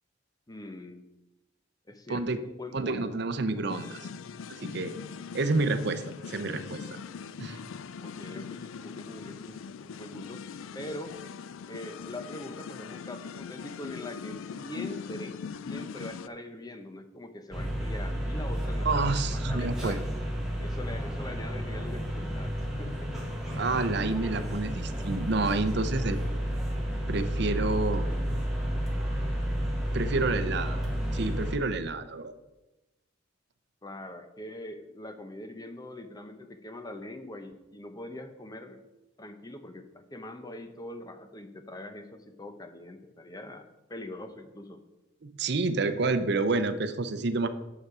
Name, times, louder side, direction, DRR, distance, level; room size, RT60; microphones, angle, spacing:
voice 1, 0.5-1.1 1.9-3.9 8.0-10.4 10.7-11.1 11.7-20.0 20.6-22.5 22.8-23.3 33.8-38.8 39.2-44.8, left 1 dB, 20° left, 8 dB, 0.7 m, -43 dB
voice 2, 2.7-4.0 4.5-4.9 5.3-7.0 7.4-7.6 18.8-20.0 23.6-26.2 27.1-28.1 29.9-30.8 31.1-32.4 45.2-47.5, right 3 dB, 55° right, 10 dB, 0.7 m, -29 dB
sound 1, 3.7-16.3, left 6 dB, 80° left, 0.4 m, -41 dB
sound 2, 17.5-31.6, equal, ahead, 1.7 m, -31 dB
9.3 x 6.8 x 4.8 m, 1.0 s
head